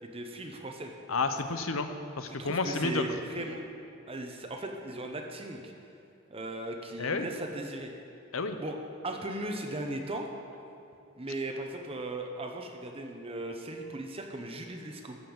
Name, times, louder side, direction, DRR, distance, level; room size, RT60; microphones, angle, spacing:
voice 1, 0.0-0.9 2.3-3.6 4.1-5.7 6.3-7.9 8.6-8.8 9.0-10.3 11.2-15.2, right 1 dB, 30° right, 3 dB, 0.9 m, -37 dB
voice 2, 1.1-3.0 7.0-7.3 8.3-8.6, left 3 dB, 90° left, 8 dB, 0.8 m, -31 dB
13.0 x 5.7 x 7.1 m, 2.6 s
head